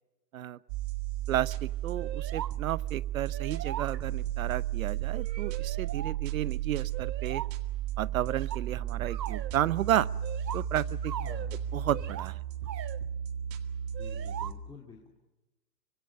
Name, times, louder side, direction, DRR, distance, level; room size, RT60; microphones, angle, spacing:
simple trap beat with deep bass, 0.7-14.5, right 11 dB, 30° right, 2.0 m, -34 dB
voice 1, 1.3-7.4 8.0-10.1 10.5-11.4 11.7-12.4, right 12 dB, 55° right, 19 dB, 0.8 m, -32 dB
sound 1, 2.0-2.5 2.9-3.0 3.3-4.3 5.1-6.2 6.9-7.5 8.3-9.5 10.2-11.5 11.9-12.3 12.7-13.0 13.9-14.5, right 10 dB, 90° right, 1.1 m, -40 dB
voice 2, 11.2-11.7 14.0-15.1, left 5 dB, 10° left, -1 dB, 2.4 m, -51 dB
25.5 x 25.0 x 6.5 m, 1.0 s
hypercardioid pair, 150°, 49 cm